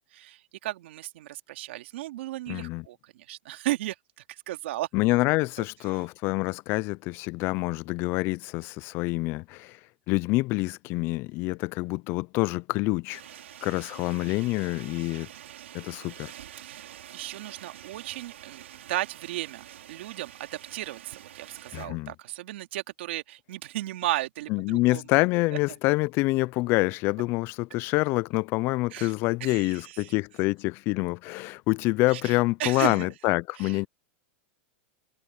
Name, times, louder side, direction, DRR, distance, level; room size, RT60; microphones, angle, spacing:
voice 1, 0.1-3.9 4.5-4.9 15.3-15.5 16.6-16.9 17.1-25.0 28.9-29.1 29.4-29.7 30.0-30.1 32.1-32.3 32.6-33.1 33.6-33.7, right 16 dB, 70° right, 2.5 m, -35 dB
voice 2, 2.5-2.8 4.9-9.8 10.1-13.2 13.6-15.3 15.7-16.3 21.7-22.1 24.5-33.9, left 22 dB, 35° left, 0.3 m, -26 dB
sound 1, 13.1-21.9, right 11 dB, 90° right, 4.6 m, -47 dB
supercardioid pair, 150°, 7 cm